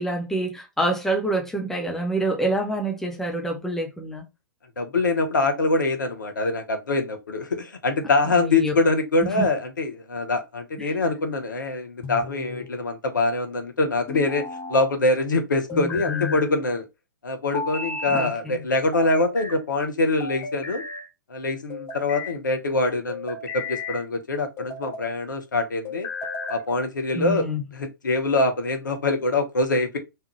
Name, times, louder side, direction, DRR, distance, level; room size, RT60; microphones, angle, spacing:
voice 1, 0.0-4.2 8.3-8.7 9.2-9.5 10.8-10.9 15.7-16.4 18.1-18.6 27.1-27.6, right 1 dB, 5° left, 0.8 m, -27 dB
voice 2, 4.8-16.8 17.2-20.8 21.3-26.1 26.5-27.5 27.7-30.0, left 2 dB, 70° left, 1.0 m, -24 dB
sound 1, 12.0-12.7 14.1-14.9 15.7-16.5 17.5-18.3 18.9-19.6 20.2-21.1 21.7-22.4 23.1-24.0 24.6-25.1 25.9-26.7, left 3 dB, 25° left, 1.1 m, -34 dB
3.6 x 3.2 x 3.1 m
figure-of-eight pair, 115°, 11 cm